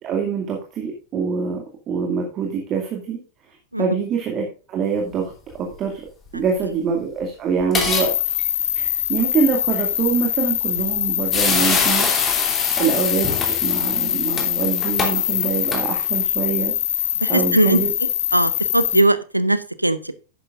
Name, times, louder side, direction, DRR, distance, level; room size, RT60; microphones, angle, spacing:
voice 1, 0.0-3.2 3.8-5.3 5.6-6.0 6.3-8.1 8.7-12.5 12.8-16.8 17.3-17.9, right 6 dB, 30° right, 1 dB, 2.2 m, -24 dB
sound 1, 7.6-8.1 8.4-8.5 10.8-10.9 11.3-16.2, left 4 dB, 20° left, 2.9 m, -25 dB
sound 2, 7.9-19.0, left 11 dB, 60° left, 1.0 m, -23 dB
voice 2, 17.2-20.1, right 1 dB, 85° right, 15 dB, 0.6 m, -20 dB
11.5 x 9.8 x 2.5 m, 0.35 s
figure-of-eight pair, 90°, 0 cm